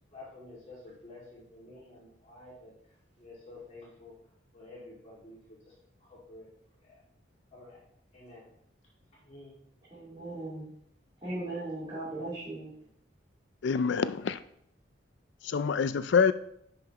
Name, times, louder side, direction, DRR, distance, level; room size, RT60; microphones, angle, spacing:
voice 1, 0.1-2.7 3.2-4.1 4.5-5.6 6.0-6.5 6.8-6.9 7.5-7.8 8.1-8.5 9.2-9.5 12.1-12.3 12.8-12.9, left 2 dB, 35° left, -6 dB, 2.1 m, -50 dB
voice 2, 9.9-10.7 11.2-12.7, right 2 dB, 25° right, -12 dB, 3.1 m, -38 dB
voice 3, 13.6-14.4 15.4-16.3, left 6 dB, 65° left, 13 dB, 0.4 m, -26 dB
10.5 x 6.0 x 2.9 m, 0.71 s
head